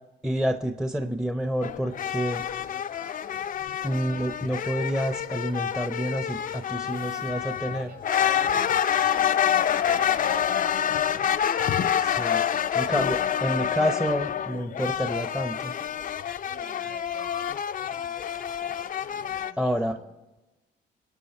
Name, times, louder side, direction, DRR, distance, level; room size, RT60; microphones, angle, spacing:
voice 1, 0.2-2.4 3.8-7.9 12.0-12.4 12.7-15.7 19.6-20.0, equal, 5° right, 6 dB, 0.6 m, -28 dB
sound 1, 1.6-19.5, left 9 dB, 45° left, 0.4 m, -27 dB
voice 2, 6.9-8.1 8.6-11.5 16.4-17.4 19.1-20.1, right 4 dB, 55° right, 3 dB, 4.8 m, -52 dB
21.5 x 8.3 x 4.2 m, 1.1 s
cardioid pair, 90°, 20 cm